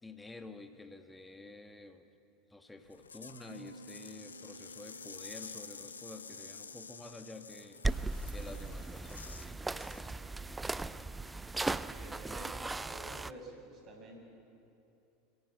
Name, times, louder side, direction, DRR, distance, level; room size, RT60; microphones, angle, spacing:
voice 1, 0.0-2.1 2.5-11.1, left 2 dB, 10° left, 7 dB, 1.9 m, -51 dB
sound 1, 2.8-9.5 9.8-10.1, left 5 dB, 85° left, 0.9 m, -50 dB
Bass guitar, 3.5-12.8, right 2 dB, 85° right, 0.8 m, -58 dB
sound 2, 7.8-13.3, right 3 dB, 15° right, 0.5 m, -37 dB
voice 2, 11.7-14.2, right 2 dB, 40° right, 1 dB, 6.4 m, -50 dB
25.0 x 17.0 x 7.8 m, 2.8 s
hypercardioid pair, 80°, 0 cm